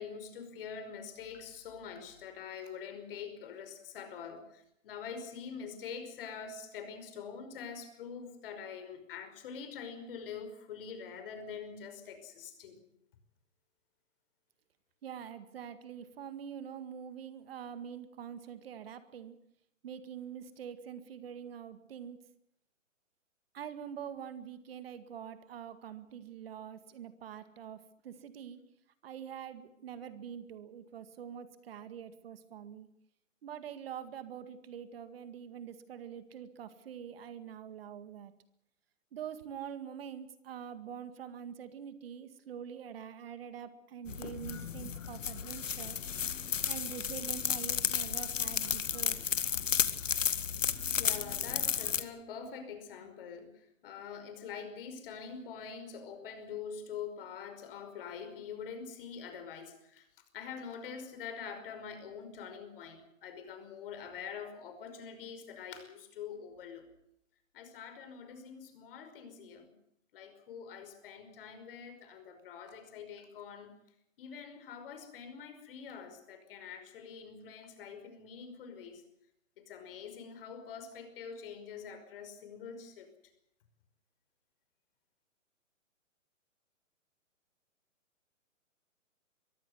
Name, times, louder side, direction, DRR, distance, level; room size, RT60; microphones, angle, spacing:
voice 1, 0.0-12.8 50.9-60.1 60.3-66.8 67.5-69.7 70.1-73.7 74.2-79.0 79.6-83.1, left 6 dB, 45° left, 8 dB, 5.4 m, -45 dB
voice 2, 15.0-19.4 19.8-22.2 23.5-28.6 29.0-32.9 33.4-38.3 39.1-46.0 46.7-49.2, right 8 dB, 45° right, 11 dB, 2.0 m, -45 dB
sound 1, 44.1-52.0, left 7 dB, 70° left, 2.0 m, -33 dB
23.5 x 15.0 x 9.6 m, 0.76 s
hypercardioid pair, 145°, 39 cm